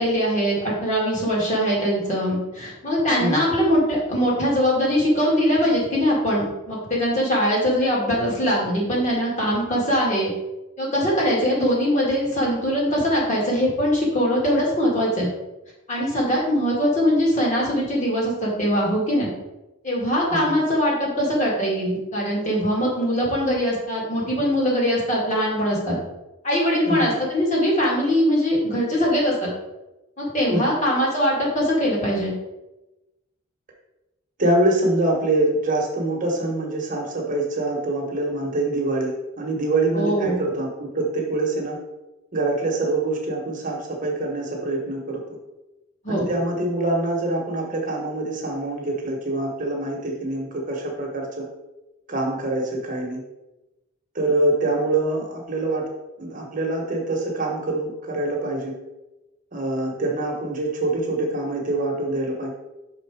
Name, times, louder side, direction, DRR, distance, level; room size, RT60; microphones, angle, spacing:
voice 1, 0.0-10.3 10.8-15.3 15.9-19.3 19.8-26.0 26.4-29.5 30.2-32.3 39.9-40.4 46.0-46.3, equal, 35° left, -4 dB, 2.0 m, -22 dB
voice 2, 3.2-3.5 20.3-20.6 26.8-27.2 30.5-30.8 34.4-41.8 42.3-45.4 46.1-51.5 52.1-53.2 54.1-55.9 56.2-58.7 59.5-62.5, right 2 dB, 40° right, -1 dB, 1.2 m, -25 dB
5.8 x 4.0 x 4.8 m, 1.0 s
head